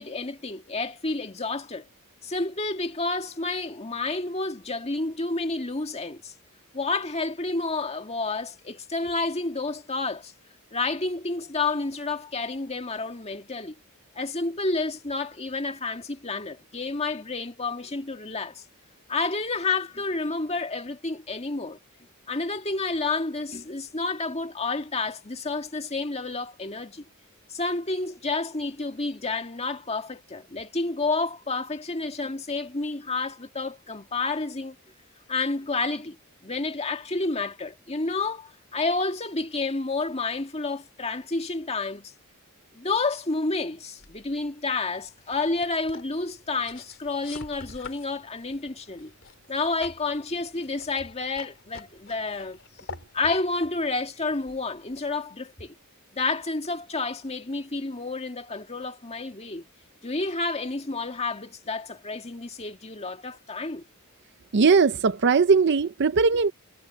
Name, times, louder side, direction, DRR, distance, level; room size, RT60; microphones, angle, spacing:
voice 1, 0.0-1.9 2.2-6.3 6.7-10.3 10.7-13.8 14.2-18.6 19.1-21.8 22.3-27.1 27.5-34.8 35.3-36.2 36.4-42.1 42.7-49.1 49.5-52.6 53.1-55.7 56.1-59.6 60.0-63.8, left 3 dB, 30° left, 2.0 m, -30 dB
sound 1, 44.0-55.1, left 4 dB, 60° left, 3.3 m, -47 dB
voice 2, 64.5-66.5, right 5 dB, 55° right, 0.5 m, -19 dB
head